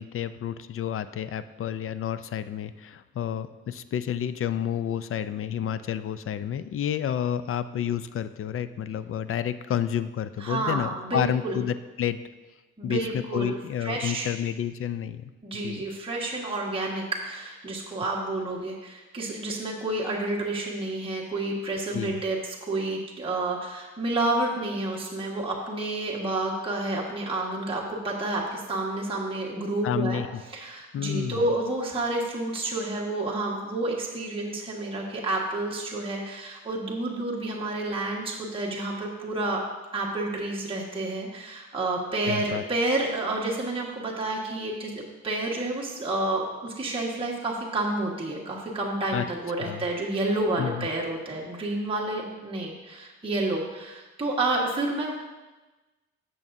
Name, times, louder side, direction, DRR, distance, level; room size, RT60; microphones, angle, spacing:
voice 1, 0.0-12.2 12.8-15.8 21.9-22.2 29.8-30.4 30.9-31.5 42.3-42.6 49.1-49.2 49.6-49.9 50.6-50.9, left 9 dB, 45° left, 13 dB, 0.4 m, -30 dB
voice 2, 10.4-11.6 12.8-14.3 15.4-30.2 30.5-39.6 39.9-55.1, right 2 dB, 20° right, -4 dB, 1.5 m, -30 dB
10.5 x 7.0 x 2.7 m, 1.2 s
cardioid pair, 90°, 30 cm